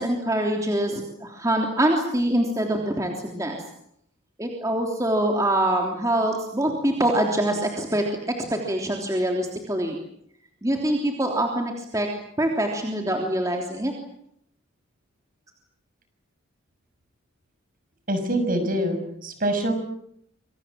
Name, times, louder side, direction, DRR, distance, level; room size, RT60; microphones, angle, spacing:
voice 1, 0.0-3.6 4.4-8.0 8.5-10.0 10.6-12.1 12.4-13.9, right 1 dB, 15° right, 1 dB, 3.3 m, -24 dB
voice 2, 18.1-19.7, right 1 dB, 40° right, 8 dB, 6.5 m, -25 dB
27.0 x 25.0 x 7.6 m, 0.72 s
head